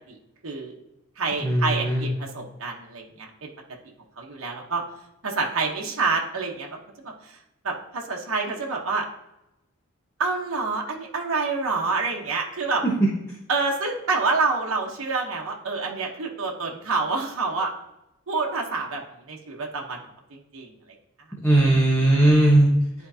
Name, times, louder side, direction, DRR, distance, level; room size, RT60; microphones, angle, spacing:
voice 1, 0.4-0.7 1.2-3.5 4.2-4.8 5.2-6.7 7.6-9.0 10.2-12.8 13.5-17.7 18.3-19.0 19.3-20.0 20.3-20.7, right 4 dB, 65° right, -1 dB, 1.1 m, -27 dB
voice 2, 1.4-2.1 12.8-12.9 21.4-22.7, right 1 dB, 10° left, -5 dB, 1.1 m, -18 dB
10.5 x 4.5 x 2.8 m, 0.89 s
head